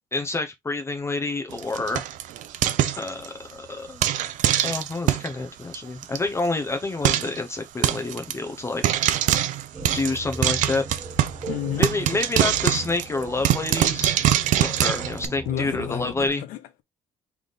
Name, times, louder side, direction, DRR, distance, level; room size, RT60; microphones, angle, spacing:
voice 1, 0.1-2.0 3.0-4.1 4.6-8.8 9.9-10.8 11.8-14.1 14.6-16.4, left 3 dB, 20° left, 0.7 m, -28 dB
Frying (food), 1.5-3.5 4.0-5.3 5.7-5.8 6.0-6.2 6.4-6.5 7.0-7.4 7.8-8.3 8.8-11.5 11.8-15.3, right 12 dB, 65° right, 0.6 m, -23 dB
sound 1, 9.7-16.3, right 3 dB, 25° right, 1.4 m, -38 dB
voice 2, 11.5-11.9 15.5-16.8, left 12 dB, 85° left, 1.0 m, -31 dB
3.5 x 3.2 x 4.1 m
cardioid pair, 115°, 14 cm